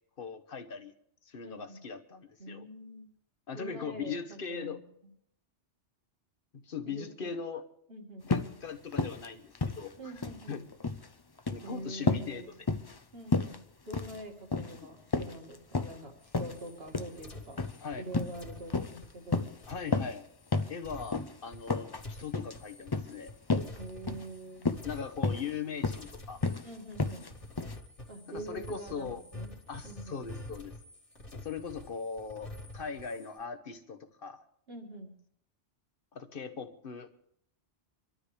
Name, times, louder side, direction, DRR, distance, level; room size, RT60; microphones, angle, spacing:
voice 1, 0.2-0.9 1.2-2.7 3.5-4.8 6.5-7.6 8.2-10.1 10.5-10.6 11.5-12.6 14.8-14.9 17.8-18.1 19.7-20.3 20.7-23.3 24.8-26.4 28.3-29.2 29.7-30.7 31.3-34.4 36.1-37.2, left 6 dB, 50° left, 9 dB, 1.2 m, -40 dB
voice 2, 1.5-1.8 2.4-3.1 3.5-4.8 6.8-7.3 7.9-8.3 10.0-10.6 11.6-12.5 13.1-17.6 18.0-19.5 23.6-24.6 26.6-27.3 28.1-29.5 29.8-30.2 34.7-35.2, right 1 dB, 55° right, 2 dB, 2.5 m, -45 dB
sound 1, 8.3-8.6 8.9-9.3 9.5-10.4 10.7-11.1 11.4-11.7 12.1-12.3 12.7-13.0 13.3-13.6 13.9-14.2 14.5-14.8 15.1-16.0 16.3-16.6 16.9-17.1 17.6-17.8 18.1-18.4 18.7-19.0 19.3-19.6 19.9-20.2 20.5-20.7 21.1-21.3 21.7-22.0 22.3-22.6 22.9-23.1 23.5-23.8 24.1-24.3 24.6-24.9 25.2-25.5 25.8-26.1 26.4-26.6 27.0-27.3 27.6-27.7, left 3 dB, 30° left, 0.5 m, -31 dB
sound 2, 16.2-24.5 24.7-25.6 25.8-33.4, left 1 dB, 80° left, 2.5 m, -48 dB
26.0 x 12.5 x 3.4 m, 0.71 s
omnidirectional pair, 1.2 m